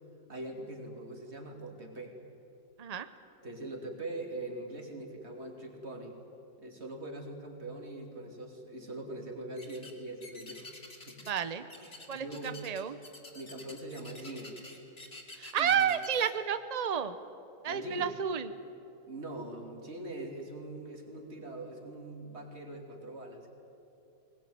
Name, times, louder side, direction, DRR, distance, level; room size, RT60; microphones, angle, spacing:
voice 1, 0.3-2.2 3.4-6.2 6.6-10.7 11.0-11.2 11.8-12.6 13.3-14.6 15.6-15.9 17.6-18.2 19.1-23.5, right 1 dB, 35° right, 2 dB, 3.1 m, -42 dB
sound 1, 9.6-9.9 10.2-11.4 11.7-16.3, left 2 dB, 35° left, 2.9 m, -49 dB
voice 2, 11.3-11.6 12.1-12.2 12.6-13.0 15.4-17.1 17.6-18.5, right 8 dB, 65° right, 11 dB, 0.4 m, -30 dB
20.5 x 20.5 x 9.4 m, 3.0 s
omnidirectional pair, 1.9 m